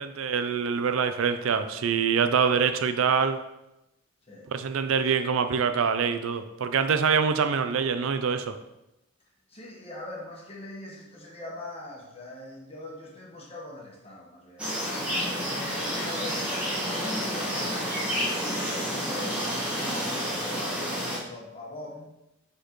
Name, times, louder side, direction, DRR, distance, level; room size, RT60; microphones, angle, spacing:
voice 1, 0.0-3.4 4.5-8.5, right 6 dB, 70° right, 9 dB, 0.4 m, -25 dB
voice 2, 9.5-14.7 15.2-22.1, left 2 dB, 25° left, -3 dB, 1.3 m, -42 dB
sound 1, 14.6-21.2, equal, 5° right, 1.6 m, -30 dB
7.3 x 4.4 x 3.1 m, 0.91 s
head